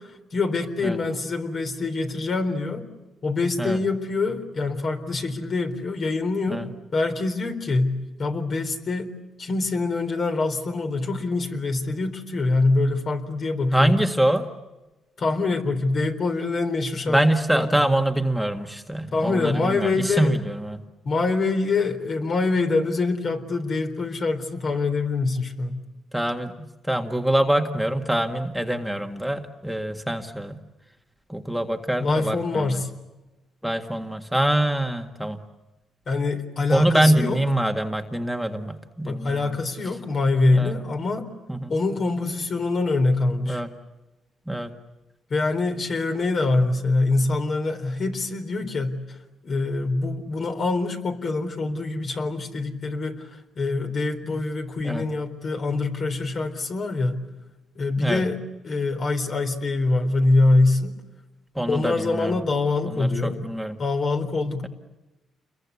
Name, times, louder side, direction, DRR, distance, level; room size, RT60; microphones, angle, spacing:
voice 1, 0.0-2.9 3.2-6.6 6.9-9.1 9.4-13.9 15.2-17.2 17.5-17.9 19.1-20.4 21.0-25.8 32.0-32.9 36.1-37.4 39.1-41.3 41.7-43.6 45.3-57.2 57.7-61.0 61.7-63.4 63.8-64.7, left 3 dB, 50° left, 5 dB, 4.0 m, -24 dB
voice 2, 13.7-14.5 17.1-20.8 26.1-26.5 26.9-30.5 31.3-32.8 33.6-35.4 36.7-39.5 40.5-40.7 41.5-41.8 43.5-43.7 44.5-44.7 54.3-54.4 54.8-55.0 58.0-58.2 61.6-62.3 63.0-63.8, right 1 dB, ahead, 4 dB, 1.8 m, -24 dB
29.5 x 22.5 x 8.4 m, 1.1 s
cardioid pair, 90°, 0 cm